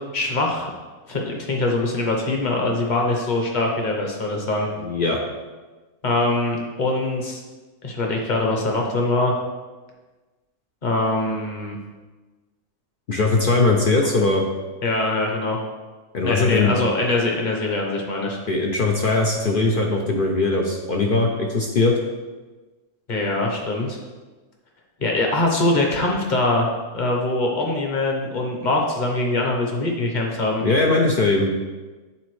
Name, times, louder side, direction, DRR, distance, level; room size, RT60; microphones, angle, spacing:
voice 1, 0.1-0.7 1.1-4.7 6.0-7.4 7.8-9.3 10.8-11.8 14.8-15.6 16.2-18.4 23.1-24.0 25.0-30.6, left 2 dB, 35° left, 0 dB, 0.9 m, -23 dB
voice 2, 4.8-5.2 13.1-14.4 16.1-16.8 18.5-22.0 30.6-31.5, left 3 dB, 65° left, 1 dB, 0.5 m, -20 dB
8.8 x 4.1 x 3.1 m, 1.3 s
omnidirectional pair, 1.6 m